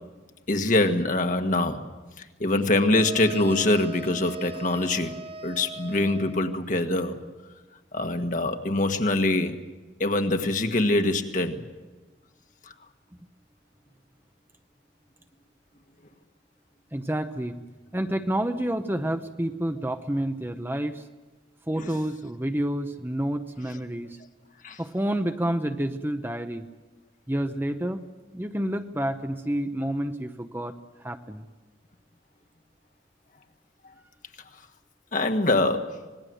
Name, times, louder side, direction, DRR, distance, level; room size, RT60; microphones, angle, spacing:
voice 1, 0.5-1.8 2.2-5.1 5.4-7.2 7.9-9.6 10.0-11.6 21.8-21.9 24.6-24.8 35.1-36.0, left 2 dB, 45° left, 6 dB, 1.6 m, -24 dB
sound 1, 2.9-6.6, right 2 dB, 30° right, 1.3 m, -40 dB
voice 2, 16.9-17.6 17.9-21.0 21.7-24.2 24.8-26.7 27.3-28.0 28.3-31.4, right 1 dB, 10° right, 7 dB, 0.8 m, -29 dB
26.0 x 20.5 x 7.8 m, 1.2 s
head